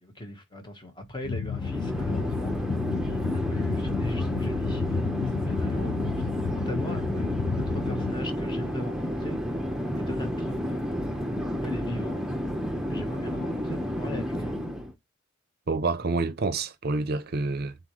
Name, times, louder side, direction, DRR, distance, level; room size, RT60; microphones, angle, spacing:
voice 1, 0.0-2.5 3.0-9.4 10.0-10.8 11.6-12.2 12.9-14.5 16.1-16.3, left 1 dB, 25° left, 1.2 m, -40 dB
sound 1, 1.2-8.1, left 5 dB, 70° left, 0.4 m, -31 dB
Chatter / Fixed-wing aircraft airplane, 1.5-14.9, equal, 5° right, 0.7 m, -31 dB
voice 2, 5.8-6.1 15.7-17.8, right 3 dB, 50° right, 0.6 m, -28 dB
4.0 x 3.9 x 3.0 m
head